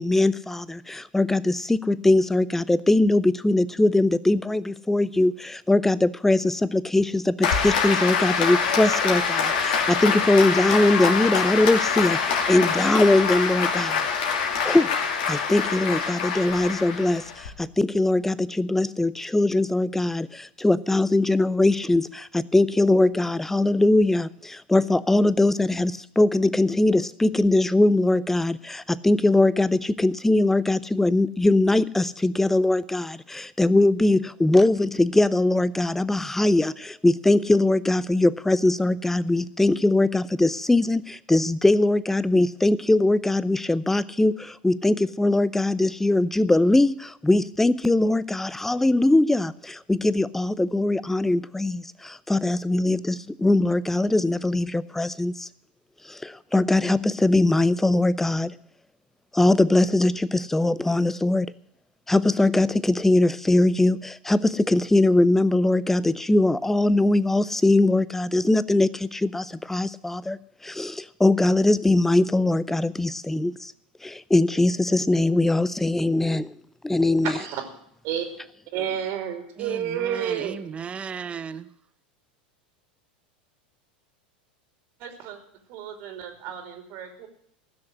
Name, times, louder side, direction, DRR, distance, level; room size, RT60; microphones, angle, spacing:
voice 1, 0.0-14.1 14.6-15.0 15.3-55.5 56.0-58.5 59.3-61.5 62.1-73.7 74.0-76.5 76.8-77.3, left 2 dB, 5° left, 18 dB, 0.6 m, -21 dB
Applause, 7.4-17.5, left 6 dB, 65° left, 2.7 m, -25 dB
voice 2, 77.2-77.6 78.0-78.3 78.7-80.6 85.0-85.4 85.7-87.3, right 9 dB, 55° right, 5 dB, 2.8 m, -31 dB
voice 3, 79.6-81.7, right 6 dB, 25° right, 14 dB, 0.8 m, -35 dB
15.5 x 6.5 x 9.8 m, 0.68 s
hypercardioid pair, 90°, 5 cm